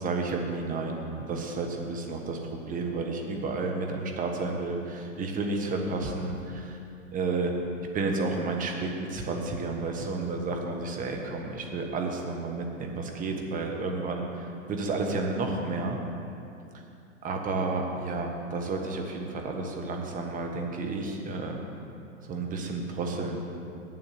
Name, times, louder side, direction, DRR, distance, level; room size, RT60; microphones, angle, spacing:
voice 1, 0.0-6.8 7.1-7.5 7.9-16.0 17.2-21.6 22.2-23.4, right 3 dB, 20° right, 2 dB, 1.3 m, -31 dB
8.5 x 7.7 x 8.2 m, 2.6 s
hypercardioid pair, 120°, 40 cm